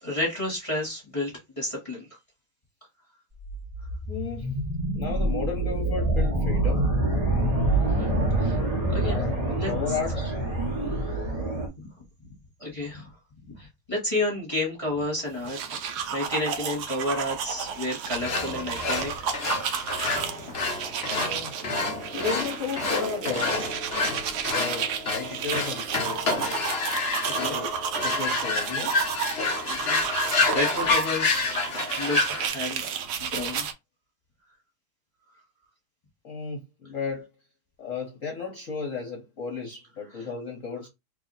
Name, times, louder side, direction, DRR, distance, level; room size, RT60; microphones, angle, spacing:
voice 1, 0.0-2.1 7.8-8.6 8.9-9.2 9.6-9.7 12.6-13.1 13.5-19.1 27.4-27.5 29.7-31.5 32.0-32.9 33.2-33.7, left 1 dB, 20° left, 1.1 m, -31 dB
sound 1, 3.4-11.7, right 2 dB, 55° right, 0.4 m, -26 dB
voice 2, 4.1-4.6 4.9-6.9 9.0-10.4 21.0-21.5 22.1-23.6 24.5-26.5 27.2-27.8 28.0-28.9 36.2-37.3 37.8-40.9, left 5 dB, 50° left, 1.0 m, -34 dB
sound 2, 15.3-33.7, right 7 dB, 70° right, 0.9 m, -32 dB
sound 3, 18.2-32.5, left 3 dB, 80° left, 0.5 m, -28 dB
3.0 x 2.7 x 4.0 m
omnidirectional pair, 2.3 m